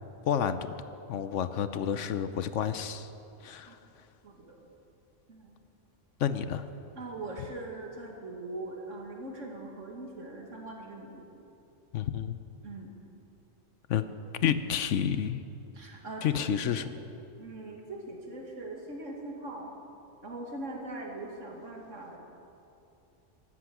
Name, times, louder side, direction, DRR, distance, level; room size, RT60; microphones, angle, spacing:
voice 1, 0.3-0.7 1.1-3.1 3.4-3.8 6.2-6.7 11.9-12.4 13.9-14.1 14.4-15.4 16.2-16.8, left 9 dB, 75° left, 12 dB, 1.0 m, -30 dB
voice 2, 4.2-4.6 5.3-5.6 7.0-11.3 12.6-12.9 15.7-16.4 17.4-19.7 20.2-22.2, right 2 dB, 75° right, 0 dB, 2.5 m, -41 dB
16.0 x 12.5 x 6.0 m, 2.7 s
omnidirectional pair, 1.3 m